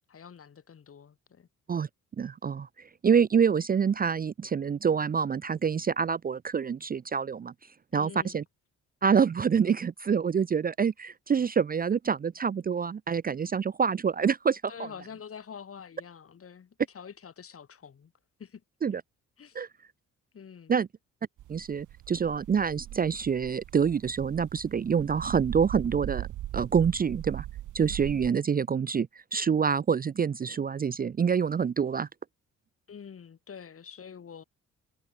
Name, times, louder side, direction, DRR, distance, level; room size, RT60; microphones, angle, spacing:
voice 1, 0.1-1.5 7.9-8.4 14.7-18.1 18.4-18.6 19.4-19.6 20.3-20.8 32.9-34.4, left 7 dB, 50° left, 6.9 m, -46 dB
voice 2, 2.2-7.5 7.9-8.4 9.0-14.6 18.8-19.0 19.5-19.7 20.7-20.9 21.5-26.3 26.5-27.5 27.7-32.1, right 6 dB, 30° right, 0.6 m, -26 dB
sound 1, 21.4-28.3, right 14 dB, 80° right, 1.7 m, -39 dB
cardioid pair, 90°, 30 cm